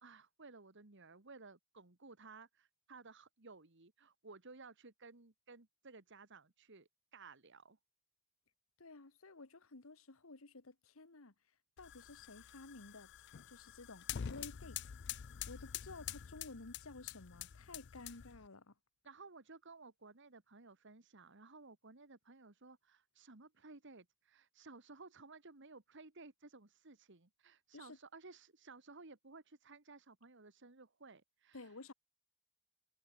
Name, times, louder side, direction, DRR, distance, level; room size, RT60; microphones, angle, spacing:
voice 1, 0.0-7.8 19.0-31.7, right 3 dB, 60° right, 1.8 m, -57 dB
voice 2, 8.8-11.3 11.8-13.1 13.5-14.9 15.5-18.7 27.7-28.0 31.5-31.9, left 3 dB, 85° left, 1.6 m, -53 dB
sound 1, 11.8-18.5, left 9 dB, 55° left, 0.5 m, -47 dB
head